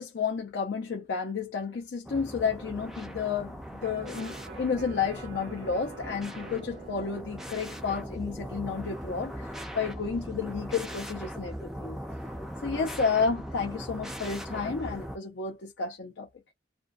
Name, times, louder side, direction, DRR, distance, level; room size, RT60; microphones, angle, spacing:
voice 1, 0.0-12.0 12.6-16.3, left 5 dB, 70° left, 0.5 m, -31 dB
sound 1, 2.0-15.2, equal, ahead, 0.3 m, -40 dB
Electric guitar, 3.8-10.0 10.4-10.5, right 5 dB, 65° right, 0.5 m, -49 dB
2.4 x 2.3 x 2.4 m
head